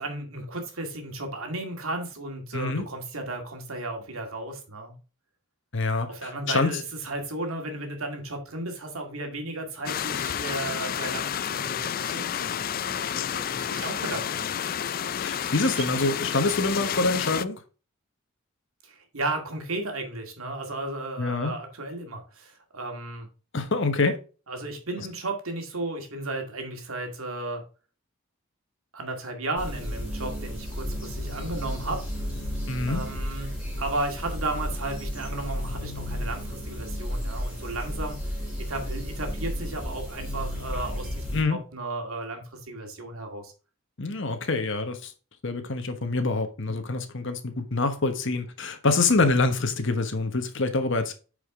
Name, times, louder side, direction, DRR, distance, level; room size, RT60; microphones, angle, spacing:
voice 1, 0.0-4.9 6.1-14.6 18.9-23.3 24.5-27.6 28.9-32.0 32.8-33.5 33.8-43.5, right 2 dB, 80° right, 2.1 m, -34 dB
voice 2, 2.5-2.9 5.7-6.8 15.2-17.6 21.2-21.5 23.5-24.2 32.7-33.0 41.3-41.6 44.0-45.1 45.4-51.1, left 3 dB, 60° left, 1.2 m, -26 dB
sound 1, 9.9-17.5, left 9 dB, 45° left, 0.4 m, -30 dB
sound 2, 29.6-41.4, equal, 5° right, 3.7 m, -33 dB
8.9 x 5.0 x 3.7 m
head